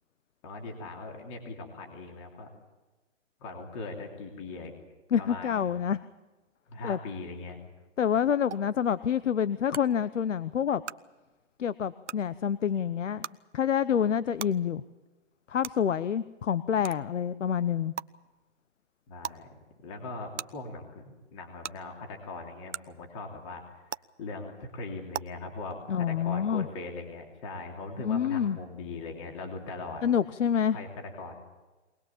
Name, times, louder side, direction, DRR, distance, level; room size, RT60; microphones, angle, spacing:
voice 1, 0.4-2.5 3.4-4.7 5.2-5.7 6.7-7.6 19.1-19.5 19.8-23.6 24.2-30.0 30.7-31.3, left 3 dB, 25° left, 2 dB, 3.0 m, -40 dB
voice 2, 5.1-6.0 6.8-7.0 8.0-10.8 11.6-13.3 13.5-14.8 15.5-17.9 25.9-26.7 28.0-28.6 30.0-30.8, left 8 dB, 85° left, 15 dB, 1.0 m, -27 dB
sound 1, 8.5-8.6 9.7-9.8 10.8-10.9 12.0-12.1 13.2-13.3 14.4-14.5 15.6-15.7 16.8-17.0 18.0-18.1 19.2-19.4 20.4-20.5 21.6-21.7 22.7-22.8 23.9-24.0 25.1-25.2, right 9 dB, 75° right, 0.9 m, -35 dB
23.5 x 19.5 x 7.3 m, 1.2 s
hypercardioid pair, 165°, 36 cm